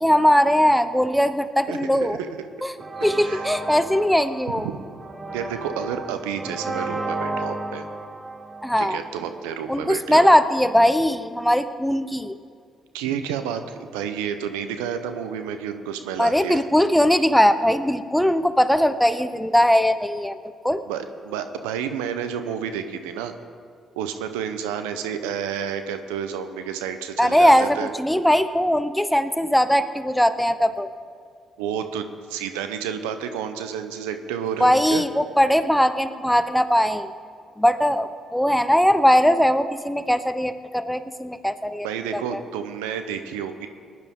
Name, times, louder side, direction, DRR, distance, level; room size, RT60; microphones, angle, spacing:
voice 1, 0.0-2.2 2.6-2.7 3.0-4.7 8.6-9.0 9.7-12.4 16.2-20.4 20.6-20.8 27.2-30.9 34.6-37.1 37.6-41.9 42.1-42.4, equal, 5° left, 11 dB, 0.8 m, -20 dB
voice 2, 1.7-2.3 3.2-3.4 4.6-4.8 5.3-7.8 8.8-10.3 12.9-16.6 20.9-23.3 24.0-27.9 31.6-35.0 41.8-43.7, right 8 dB, 85° right, 8 dB, 0.8 m, -30 dB
sound 1, 2.8-9.5, right 2 dB, 25° right, 1.4 m, -33 dB
19.5 x 11.0 x 3.7 m, 2.1 s
hypercardioid pair, 50°, 0 cm